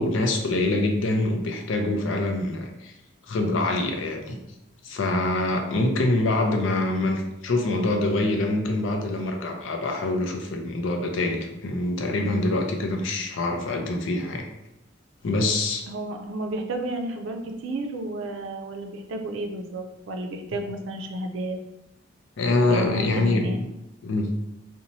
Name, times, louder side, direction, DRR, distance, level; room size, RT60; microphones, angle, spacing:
voice 1, 0.0-2.9 3.3-4.4 4.8-14.5 15.2-15.9 22.4-23.5 24.0-24.3, left 2 dB, 80° left, 3 dB, 0.5 m, -25 dB
voice 2, 15.9-21.6 22.6-23.6, right 1 dB, 85° right, 4 dB, 0.4 m, -32 dB
2.6 x 2.1 x 2.9 m, 0.89 s
head